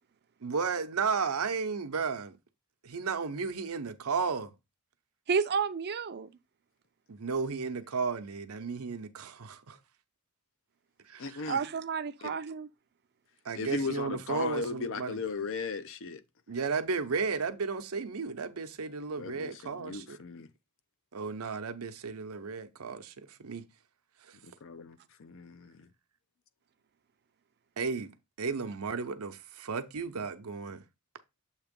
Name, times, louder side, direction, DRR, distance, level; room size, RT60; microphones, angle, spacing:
voice 1, 0.4-2.4 2.8-4.5 7.1-9.8 11.1-11.2 13.5-15.2 16.5-20.2 21.1-23.1 23.4-23.6 27.8-28.1 28.4-30.8, right 5 dB, 85° right, 0.7 m, -33 dB
voice 2, 5.3-6.3 11.5-12.7, right 6 dB, 50° right, 0.5 m, -31 dB
voice 3, 11.2-11.6 12.2-12.3 13.5-16.2 19.2-20.5 24.4-25.9, left 4 dB, 65° left, 0.6 m, -37 dB
7.3 x 2.9 x 5.2 m
head